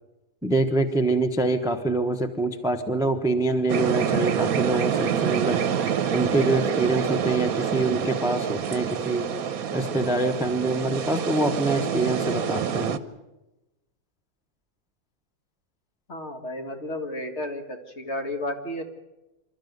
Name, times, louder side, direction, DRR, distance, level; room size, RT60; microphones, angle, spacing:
voice 1, 0.4-5.6 6.1-9.3 9.7-13.0, right 2 dB, 5° right, 8 dB, 0.9 m, -25 dB
sound 1, 3.7-13.0, right 8 dB, 65° right, 1.3 m, -27 dB
voice 2, 16.1-18.8, left 1 dB, 45° left, 4 dB, 2.2 m, -32 dB
27.0 x 13.0 x 9.4 m, 1.0 s
omnidirectional pair, 1.7 m